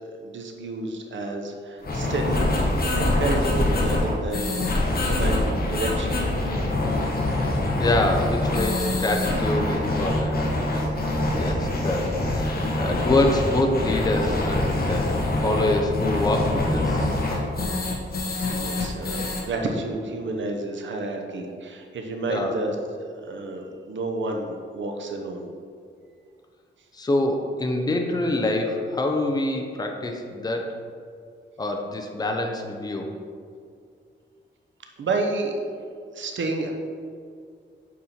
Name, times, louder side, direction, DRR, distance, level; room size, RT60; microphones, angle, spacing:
voice 1, 0.2-2.6 3.0-4.7 5.0-6.2 18.3-22.7 23.2-25.4 35.0-35.9 36.1-36.7, right 2 dB, 75° right, 3 dB, 0.9 m, -30 dB
sound 1, 1.8-19.4, left 2 dB, 50° left, 1.3 m, -25 dB
voice 2, 7.8-10.5 11.3-17.1 22.3-22.6 26.9-30.8 31.6-33.1, left 2 dB, 20° left, 3 dB, 0.7 m, -25 dB
8.5 x 4.3 x 4.3 m, 2.3 s
wide cardioid pair, 130°, 20 cm